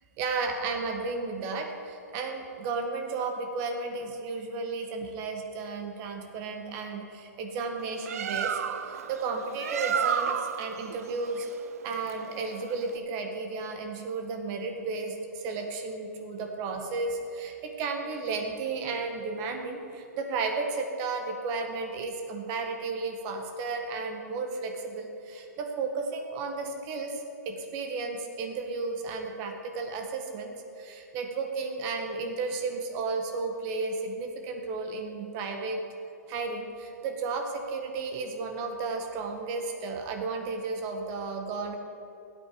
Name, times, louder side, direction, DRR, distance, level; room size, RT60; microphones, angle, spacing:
voice 1, 0.2-8.6 8.9-11.5 11.8-35.8 36.3-41.8, right 4 dB, 35° right, 4 dB, 1.5 m, -33 dB
Bird, 7.8-13.0, right 8 dB, 55° right, 0.7 m, -32 dB
16.5 x 8.9 x 5.0 m, 2.7 s
figure-of-eight pair, 120°, 9 cm